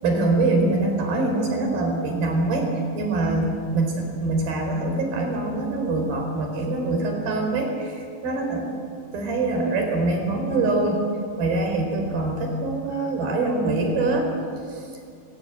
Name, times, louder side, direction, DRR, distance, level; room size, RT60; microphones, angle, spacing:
voice 1, 0.0-2.7 2.9-8.7 9.1-11.1 11.4-14.3 14.7-15.0, right 2 dB, 85° right, 3 dB, 6.1 m, -24 dB
29.5 x 15.5 x 9.0 m, 2.3 s
omnidirectional pair, 4.1 m